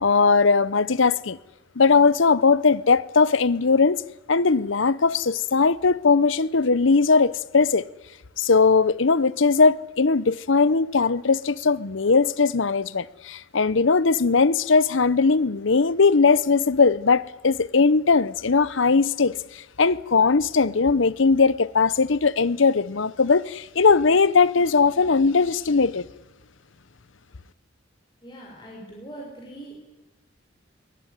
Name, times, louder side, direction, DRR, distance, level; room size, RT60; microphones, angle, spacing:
voice 1, 0.0-1.4 1.8-4.0 4.3-7.8 8.4-26.0, left 4 dB, 70° left, 0.8 m, -19 dB
voice 2, 28.2-29.8, right 1 dB, 25° left, 6.0 m, -41 dB
23.0 x 19.0 x 10.0 m
head